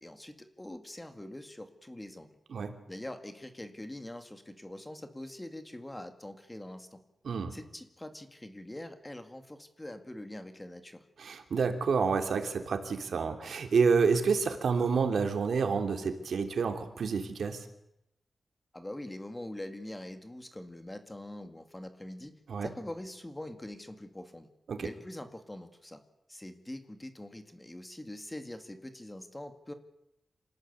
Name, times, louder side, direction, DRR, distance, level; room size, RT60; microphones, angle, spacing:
voice 1, 0.0-2.3 2.9-7.0 7.5-11.0 18.7-22.3 22.6-24.5 24.8-26.0 26.3-29.7, left 1 dB, 10° left, 8 dB, 2.1 m, -44 dB
voice 2, 7.2-7.5 11.2-17.7 22.5-22.7 24.7-24.9, right 5 dB, 90° right, 6 dB, 3.0 m, -29 dB
27.0 x 19.5 x 8.3 m, 0.83 s
wide cardioid pair, 170°, 0 cm